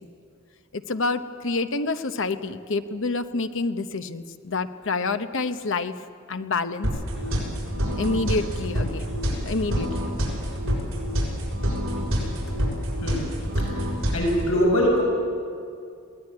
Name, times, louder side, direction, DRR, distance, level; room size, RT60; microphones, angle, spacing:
voice 1, 0.7-5.9 6.3-6.9 8.0-9.1 9.5-9.9, left 3 dB, 65° left, 10 dB, 0.9 m, -27 dB
sound 1, 6.8-14.5, equal, 65° right, 6.7 m, -27 dB
voice 2, 14.1-15.0, equal, 85° left, -1 dB, 6.3 m, -21 dB
21.5 x 17.5 x 9.6 m, 2.4 s
head